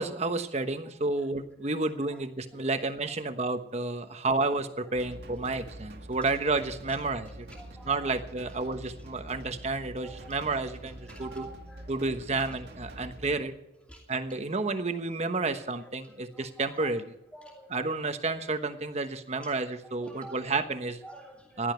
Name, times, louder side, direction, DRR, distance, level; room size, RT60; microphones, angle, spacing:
voice 1, 0.0-7.5 7.8-11.5 11.9-13.5 14.1-17.1 17.7-21.0 21.6-21.7, right 3 dB, 35° right, 8 dB, 1.1 m, -31 dB
sound 1, 4.9-13.4, right 1 dB, 60° right, 2.0 m, -46 dB
voice 2, 6.9-8.1 8.6-8.7 9.1-9.3 10.0-10.4 11.0-11.9 12.4-12.6 13.1-13.2 13.9-14.0 16.1-16.9 17.3-17.7 19.3-19.5 19.8-20.4 21.0-21.7, right 1 dB, 5° left, -2 dB, 2.6 m, -49 dB
16.0 x 11.5 x 4.5 m, 0.86 s
head